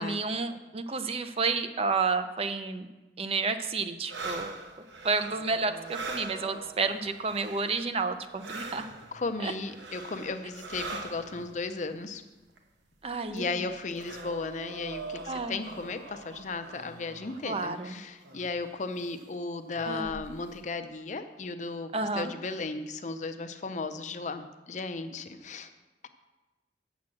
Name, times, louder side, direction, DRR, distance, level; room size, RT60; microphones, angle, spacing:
voice 1, 0.0-2.9 3.2-4.6 5.0-8.9 9.4-9.5 13.0-13.7 15.3-15.6 17.4-18.0 19.9-20.2 21.9-22.3, right 4 dB, 35° right, 10 dB, 0.5 m, -30 dB
sound 1, 4.1-8.1 8.3-11.6 12.6-12.7 13.0-17.7 18.2-18.5 19.0-19.2 19.7-20.5, right 3 dB, 85° right, 1.0 m, -42 dB
voice 2, 9.1-12.2 13.3-21.9 22.2-25.7, left 3 dB, 40° left, 9 dB, 0.5 m, -35 dB
7.3 x 6.0 x 7.5 m, 1.1 s
head